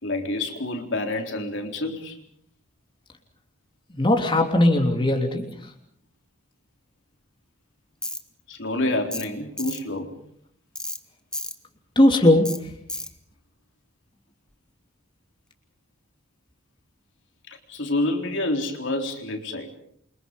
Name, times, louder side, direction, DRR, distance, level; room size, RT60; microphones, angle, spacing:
voice 1, 0.0-2.2 8.5-10.1 17.5-19.8, left 2 dB, 65° left, 3 dB, 4.0 m, -28 dB
voice 2, 3.9-5.5 11.9-12.5, left 1 dB, 25° left, 2 dB, 3.2 m, -18 dB
Tools, 8.0-8.2 9.1-9.3 9.6-9.8 10.8-11.0 11.3-11.6 12.5-12.6 12.9-13.1, left 2 dB, 5° left, 1.6 m, -32 dB
29.0 x 25.0 x 5.4 m, 0.67 s
head